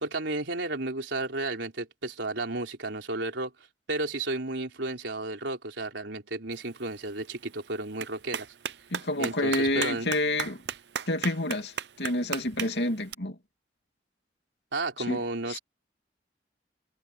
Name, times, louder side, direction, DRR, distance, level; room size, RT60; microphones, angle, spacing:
voice 1, 0.0-3.5 3.9-8.5 9.2-10.1 14.7-15.6, right 2 dB, 90° right, 4.1 m, -33 dB
Clapping, 6.5-13.1, right 7 dB, 75° right, 0.8 m, -38 dB
voice 2, 8.9-10.6 11.1-13.4 15.1-15.2 15.5-15.6, left 1 dB, 70° left, 2.7 m, -29 dB
head